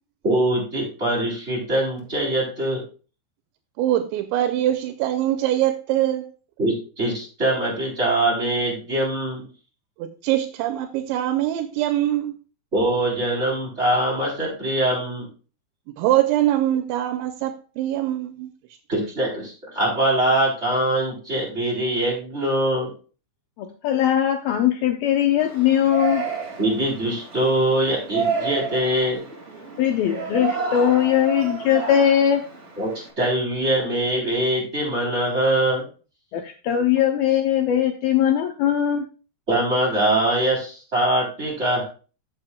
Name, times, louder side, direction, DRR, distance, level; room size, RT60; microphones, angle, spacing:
voice 1, 0.2-2.8 6.6-9.5 12.7-15.3 18.9-22.9 26.6-29.2 32.8-35.9 39.5-41.8, right 1 dB, 15° right, 3.3 m, -23 dB
voice 2, 3.8-6.3 10.0-12.4 16.0-18.5, right 13 dB, 85° right, 3.0 m, -23 dB
voice 3, 23.6-26.3 29.8-32.4 36.3-39.0, left 10 dB, 80° left, 2.1 m, -20 dB
Yell, 25.4-33.1, right 5 dB, 35° right, 1.0 m, -31 dB
14.5 x 7.2 x 2.3 m
omnidirectional pair, 5.2 m